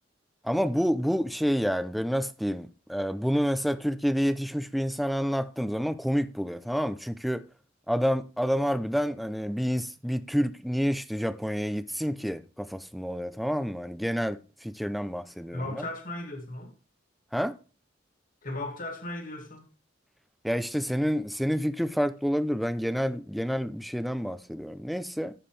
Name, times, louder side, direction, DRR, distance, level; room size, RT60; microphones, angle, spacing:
voice 1, 0.4-7.4 7.9-15.8 17.3-17.6 20.4-25.3, equal, ahead, 0.6 m, -28 dB
voice 2, 15.5-16.7 18.4-19.7, left 1 dB, 45° left, 2.5 m, -36 dB
14.5 x 4.9 x 3.3 m
head